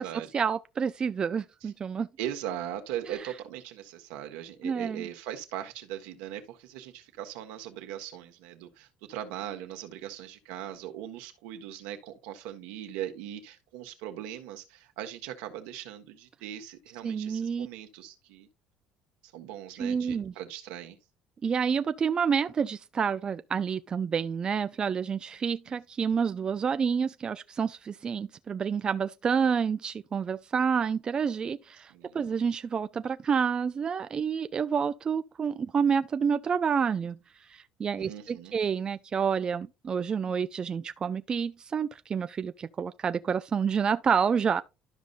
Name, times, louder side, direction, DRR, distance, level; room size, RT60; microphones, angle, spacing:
voice 1, 0.3-2.1 3.1-3.3 4.6-5.1 17.0-17.7 19.8-20.3 21.4-44.6, right 6 dB, 35° right, 0.4 m, -29 dB
voice 2, 2.2-18.5 19.2-21.0 25.7-25.8 31.9-32.2 37.9-38.5, right 11 dB, 85° right, 1.5 m, -39 dB
12.5 x 5.2 x 2.5 m
supercardioid pair, 80°, 2 cm